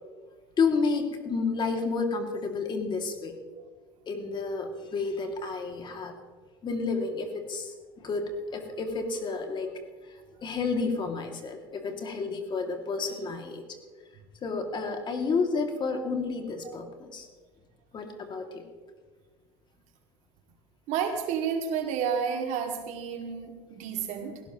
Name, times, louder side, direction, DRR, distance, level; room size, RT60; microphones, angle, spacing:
voice 1, 0.6-3.3 4.1-6.1 6.6-9.7 10.4-13.6 14.4-17.3 17.9-18.6, left 4 dB, 35° left, 4 dB, 2.3 m, -30 dB
voice 2, 20.9-24.4, right 7 dB, 60° right, 4 dB, 2.3 m, -31 dB
17.5 x 16.5 x 3.0 m, 1.4 s
hypercardioid pair, 85°, 14 cm